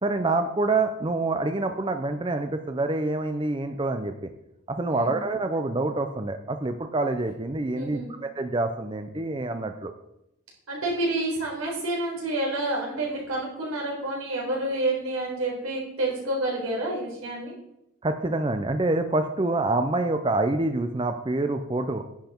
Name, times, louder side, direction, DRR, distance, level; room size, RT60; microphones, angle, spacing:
voice 1, 0.0-4.3 4.7-8.0 8.4-9.9 18.0-22.0, right 2 dB, 25° right, 7 dB, 0.5 m, -26 dB
voice 2, 7.7-8.1 10.7-17.5, right 2 dB, 85° right, -2 dB, 4.4 m, -29 dB
10.5 x 7.9 x 4.5 m, 0.84 s
head